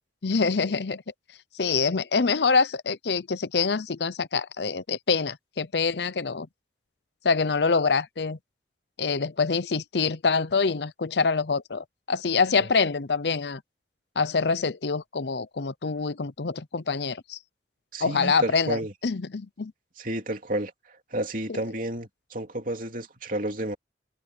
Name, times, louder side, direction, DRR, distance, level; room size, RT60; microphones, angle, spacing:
voice 1, 0.2-1.0 1.5-6.5 7.2-8.4 9.0-13.6 14.2-17.4 18.0-19.7 21.5-21.6, left 4 dB, 70° left, 0.7 m, -25 dB
voice 2, 17.9-18.9 20.0-23.8, right 1 dB, 50° right, 3.0 m, -31 dB
head